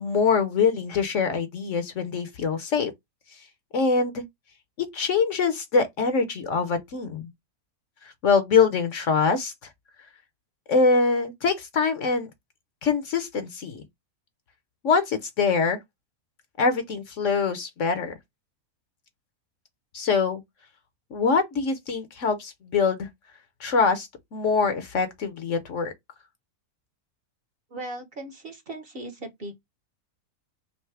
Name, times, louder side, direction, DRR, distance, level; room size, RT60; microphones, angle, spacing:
voice 1, 0.0-2.9 3.7-4.2 4.8-7.3 8.2-9.5 10.7-12.3 12.8-13.8 14.8-15.8 16.6-18.1 19.9-20.4 21.1-23.1 23.6-25.9, left 5 dB, 60° left, 1.1 m, -24 dB
voice 2, 27.7-29.5, right 2 dB, 45° right, 1.1 m, -38 dB
5.5 x 2.1 x 3.3 m
omnidirectional pair, 1.5 m